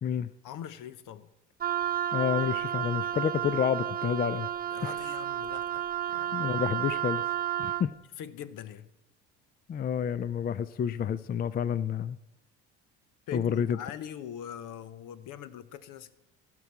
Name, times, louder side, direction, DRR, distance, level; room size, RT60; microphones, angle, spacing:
voice 1, 0.4-1.3 4.7-6.4 8.2-8.9 13.3-16.1, left 9 dB, 60° left, 0.9 m, -42 dB
Wind instrument woodwind instrument, 1.6-7.9, right 11 dB, 25° right, 0.5 m, -31 dB
voice 2, 2.1-4.5 4.8-4.9 6.3-7.2 7.6-7.9 9.7-12.2 13.3-13.8, left 8 dB, 25° left, 0.4 m, -29 dB
16.0 x 6.0 x 4.7 m
hypercardioid pair, 70°, 35 cm